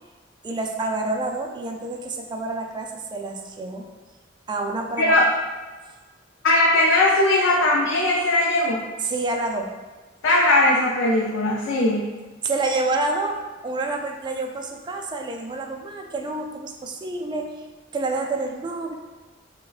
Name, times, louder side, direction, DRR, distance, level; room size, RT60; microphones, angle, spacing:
voice 1, 0.4-3.9 4.5-5.2 9.0-9.7 12.4-17.7 17.9-18.9, right 2 dB, 25° right, 2 dB, 0.3 m, -28 dB
voice 2, 6.4-8.8 10.2-12.1, left 2 dB, 80° left, -3 dB, 0.5 m, -19 dB
5.9 x 2.2 x 2.4 m, 1.3 s
head